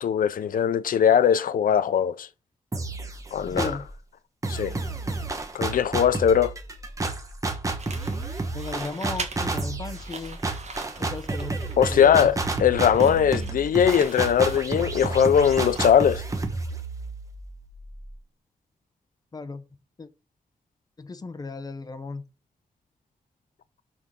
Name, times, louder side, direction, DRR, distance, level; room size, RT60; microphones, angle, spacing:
voice 1, 0.0-2.3 3.3-3.7 4.5-4.7 5.5-6.5 11.8-16.2, left 8 dB, 85° left, 0.5 m, -20 dB
sound 1, 2.7-3.9 4.4-18.1, right 3 dB, 25° right, 1.1 m, -31 dB
voice 2, 3.4-3.9 8.5-10.4 11.0-12.3 19.3-19.6 20.0-20.1 21.0-22.2, left 3 dB, 30° left, 0.7 m, -35 dB
sound 2, 7.8-16.1, right 4 dB, 55° right, 1.5 m, -42 dB
6.2 x 4.7 x 5.3 m
wide cardioid pair, 165°, 14 cm